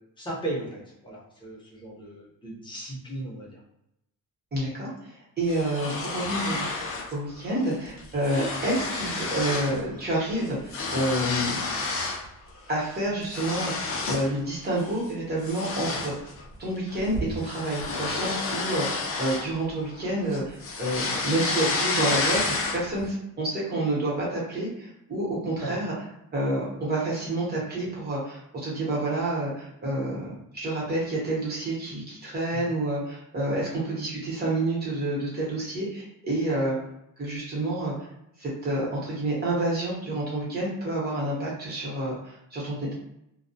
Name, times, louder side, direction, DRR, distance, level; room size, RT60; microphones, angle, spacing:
voice 1, 0.0-3.6 25.6-25.8 32.5-32.6, right 1 dB, 15° left, -6 dB, 0.7 m, -36 dB
voice 2, 4.5-6.7 7.1-11.6 12.7-16.3 16.6-25.9 26.3-36.8 37.2-37.9 38.4-42.9, right 1 dB, 30° right, -6 dB, 1.0 m, -29 dB
sound 1, 5.5-7.1 7.5-7.7 8.0-9.8 10.1-12.3 12.7-14.3 14.8-15.0 15.4-20.0 20.3-23.0, left 3 dB, 40° left, 0.5 m, -30 dB
2.3 x 2.1 x 2.6 m, 0.82 s
cardioid pair, 165°, 33 cm